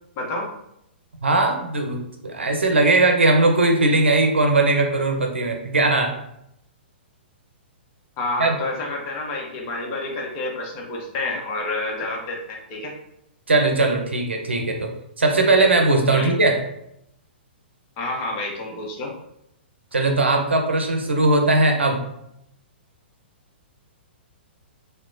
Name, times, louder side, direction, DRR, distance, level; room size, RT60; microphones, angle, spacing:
voice 1, 0.2-0.5 8.2-12.9 16.1-16.3 18.0-19.2, left 2 dB, 35° left, -1 dB, 0.7 m, -29 dB
voice 2, 1.2-6.1 8.4-8.6 13.5-14.9 15.2-16.6 19.9-22.0, right 2 dB, 90° right, 3 dB, 0.5 m, -19 dB
2.9 x 2.1 x 2.5 m, 0.78 s
hypercardioid pair, 120°, 6 cm